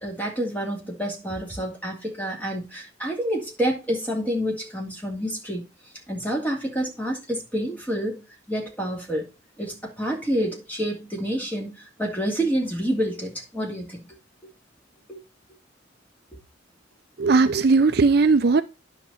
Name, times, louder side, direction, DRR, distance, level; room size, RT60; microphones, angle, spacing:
voice 1, 0.0-5.6 6.1-9.3 9.6-14.0 15.1-15.2, equal, 10° left, 2.5 m, -28 dB
voice 2, 17.2-18.6, right 4 dB, 55° right, 0.5 m, -18 dB
9.8 x 5.8 x 4.1 m
head